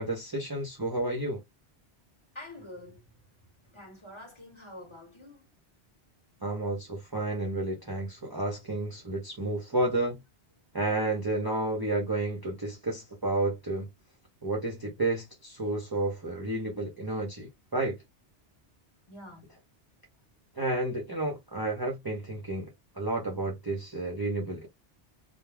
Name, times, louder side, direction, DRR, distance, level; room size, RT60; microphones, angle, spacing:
voice 1, 0.0-1.4 6.4-10.2 10.7-13.9 14.4-18.0 20.6-22.7 23.0-24.7, right 2 dB, 30° right, 0.5 m, -31 dB
voice 2, 2.3-3.0 3.7-5.5 19.1-19.5, left 1 dB, 30° left, 0.9 m, -46 dB
2.2 x 2.1 x 3.2 m
omnidirectional pair, 1.1 m